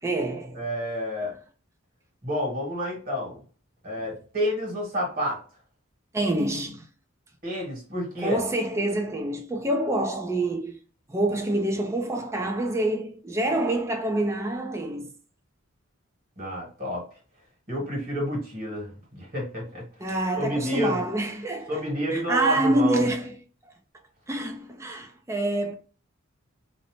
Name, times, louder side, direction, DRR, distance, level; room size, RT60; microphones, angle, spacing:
voice 1, 0.0-0.6 6.1-6.9 8.2-10.8 11.1-15.1 20.0-21.8 22.1-23.3 24.3-25.7, right 1 dB, 15° right, 0.4 m, -26 dB
voice 2, 0.5-1.3 2.2-3.4 3.8-5.4 7.4-8.4 16.4-17.1 17.7-19.8 20.4-21.0 21.7-23.0, equal, 45° right, 1.4 m, -29 dB
2.6 x 2.0 x 3.1 m
head